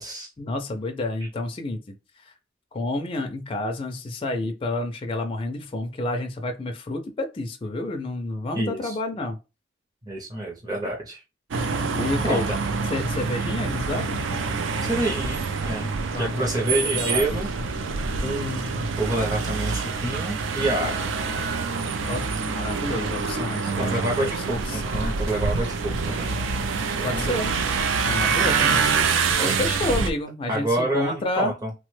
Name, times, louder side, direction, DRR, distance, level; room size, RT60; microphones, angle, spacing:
voice 1, 0.4-1.8 2.2-2.3 2.7-9.4 11.9-12.5 12.9-14.3 16.1-17.4 22.1-24.8 27.0-27.5 28.0-28.9 29.4-31.5, left 2 dB, 25° left, 0.3 m, -29 dB
voice 2, 8.5-9.0 10.1-11.2 12.0-12.6 14.8-15.9 16.2-17.5 18.2-20.9 23.6-26.4 27.0-27.4 29.4-29.6 30.5-31.7, right 1 dB, 20° right, 0.6 m, -28 dB
sound 1, 11.5-30.1, right 4 dB, 65° right, 0.4 m, -26 dB
3.2 x 2.1 x 3.1 m
head